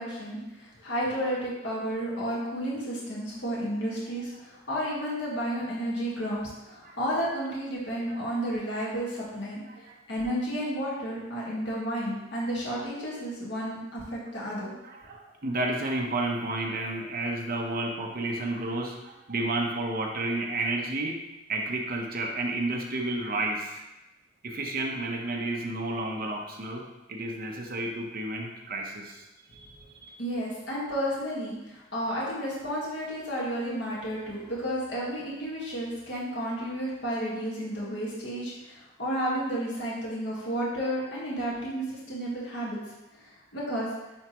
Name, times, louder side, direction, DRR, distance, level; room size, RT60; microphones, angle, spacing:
voice 1, 0.0-9.6 10.1-14.7 30.2-42.8 43.2-43.9, equal, 65° left, -6 dB, 1.7 m, -32 dB
voice 2, 14.8-21.2 21.5-23.8 24.4-26.8 27.1-29.3 29.5-30.1, right 2 dB, 50° right, 0 dB, 0.9 m, -31 dB
9.4 x 3.4 x 3.0 m, 1.0 s
head